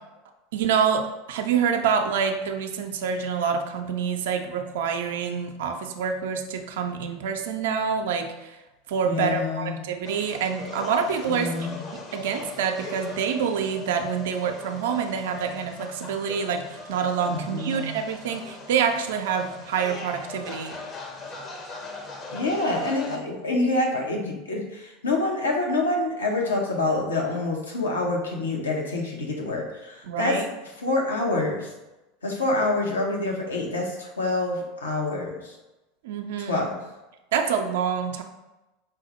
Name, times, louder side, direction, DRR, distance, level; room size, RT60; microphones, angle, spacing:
voice 1, 0.5-8.6 8.9-11.7 12.1-20.8 30.1-30.5 36.0-36.7 37.3-38.2, right 6 dB, 65° right, 5 dB, 0.4 m, -27 dB
voice 2, 9.0-9.8 11.3-11.8 17.2-18.0 22.3-30.4 30.8-31.7 32.2-35.6 36.4-36.8, left 2 dB, 80° left, 0 dB, 0.7 m, -27 dB
sound 1, 10.0-23.2, left 3 dB, 35° left, 0.6 m, -40 dB
4.6 x 2.0 x 3.0 m, 1.0 s
figure-of-eight pair, 80°, 0 cm